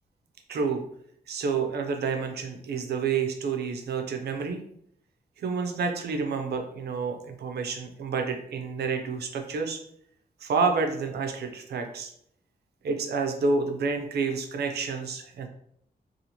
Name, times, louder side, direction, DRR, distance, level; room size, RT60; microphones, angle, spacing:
voice 1, 0.5-0.8 1.3-4.6 5.4-9.8 10.4-12.1 12.8-15.5, right 4 dB, 80° right, 5 dB, 0.5 m, -29 dB
2.8 x 2.4 x 2.8 m, 0.68 s
wide cardioid pair, 170°, 17 cm